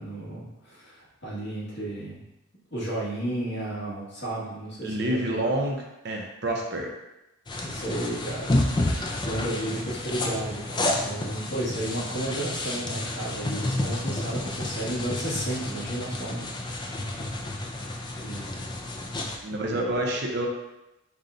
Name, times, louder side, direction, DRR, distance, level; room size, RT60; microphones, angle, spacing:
voice 1, 0.0-2.2 2.7-5.4 7.6-17.4 18.2-18.8 19.6-20.0, right 1 dB, 55° left, -7 dB, 1.5 m, -33 dB
voice 2, 4.8-5.8 6.0-6.9 19.4-20.5, right 1 dB, 55° right, 0 dB, 0.7 m, -28 dB
sound 1, 7.5-19.4, left 1 dB, 20° left, 0.4 m, -30 dB
5.5 x 2.4 x 3.8 m, 0.93 s
head